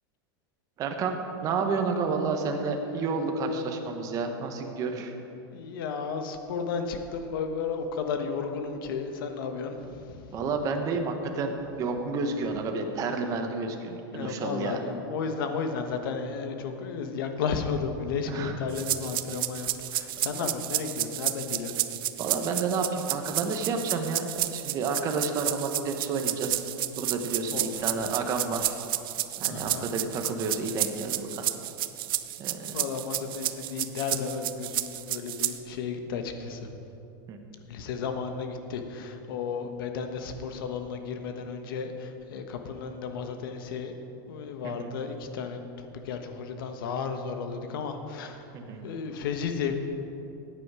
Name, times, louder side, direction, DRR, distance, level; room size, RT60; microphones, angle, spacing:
voice 1, 0.8-5.1 10.3-14.8 18.3-18.5 22.2-26.6 27.0-28.8 29.4-31.5 32.4-32.8 37.3-37.4 44.6-44.9 48.5-48.9, right 4 dB, 30° right, 4 dB, 1.2 m, -30 dB
voice 2, 5.5-10.4 14.1-21.8 27.5-27.9 29.5-29.9 32.7-36.7 37.6-43.9 44.3-48.5 48.8-49.9, left 5 dB, 75° left, 6 dB, 1.3 m, -33 dB
sound 1, 18.7-35.6, right 15 dB, 75° right, 0.6 m, -31 dB
15.0 x 9.1 x 4.9 m, 2.9 s
supercardioid pair, 160°, 12 cm